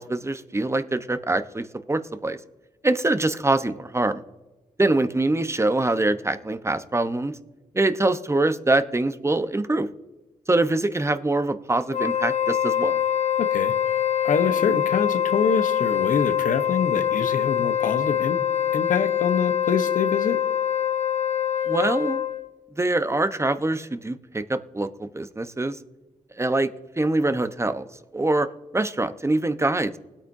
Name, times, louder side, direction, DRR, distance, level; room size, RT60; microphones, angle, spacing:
voice 1, 0.0-2.4 2.8-4.2 4.8-7.3 7.7-9.9 10.5-13.0 21.7-22.2 22.8-25.8 26.4-26.7 27.0-27.8 28.1-28.5 28.7-30.0, right 2 dB, 20° right, 10 dB, 1.0 m, -24 dB
Wind instrument woodwind instrument, 11.9-22.5, left 10 dB, 55° left, 1.2 m, -24 dB
voice 2, 13.4-13.7 14.2-18.4 18.7-20.4, left 6 dB, 75° left, 9 dB, 1.1 m, -25 dB
20.0 x 8.7 x 2.7 m, 1.1 s
supercardioid pair, 45°, 14 cm